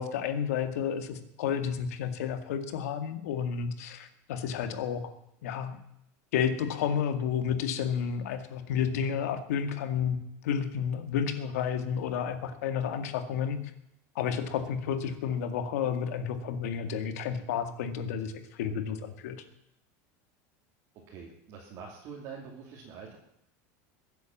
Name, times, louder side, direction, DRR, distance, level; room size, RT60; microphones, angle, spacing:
voice 1, 0.0-5.1 5.4-5.8 6.3-13.6 14.2-19.4, left 7 dB, 85° left, 8 dB, 2.0 m, -31 dB
voice 2, 21.1-23.2, right 6 dB, 40° right, -3 dB, 2.8 m, -45 dB
22.5 x 8.3 x 7.3 m, 0.79 s
supercardioid pair, 170°, 8 cm